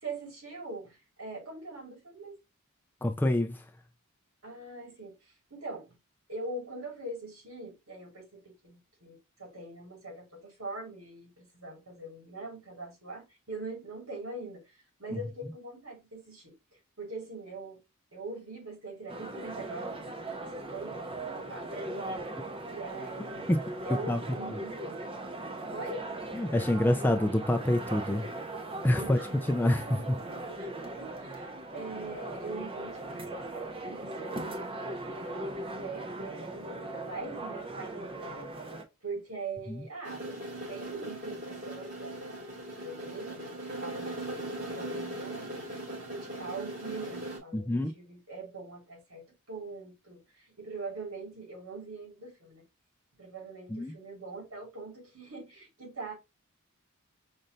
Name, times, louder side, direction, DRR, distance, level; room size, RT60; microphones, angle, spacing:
voice 1, 0.0-2.4 4.4-6.0 6.3-14.7 15.0-16.5 17.0-17.8 18.1-22.1 22.7-25.0 25.7-26.1 29.0-29.3 29.6-30.1 30.3-34.7 35.2-38.7 39.0-40.4 40.7-42.5 42.7-45.5 46.1-52.6 53.2-56.1, right 3 dB, 80° right, 2.8 m, -43 dB
voice 2, 3.0-3.6 15.1-15.2 23.5-23.6 24.1-24.2 24.5-24.6 26.3-28.3 28.8-29.2 29.5-29.8 39.7-39.8 47.5-47.9 53.7-53.9, left 1 dB, 10° left, 0.4 m, -27 dB
sound 1, 19.1-38.8, right 2 dB, 25° right, 0.7 m, -39 dB
sound 2, 40.0-47.4, right 1 dB, 50° right, 3.1 m, -39 dB
5.4 x 2.6 x 3.1 m
head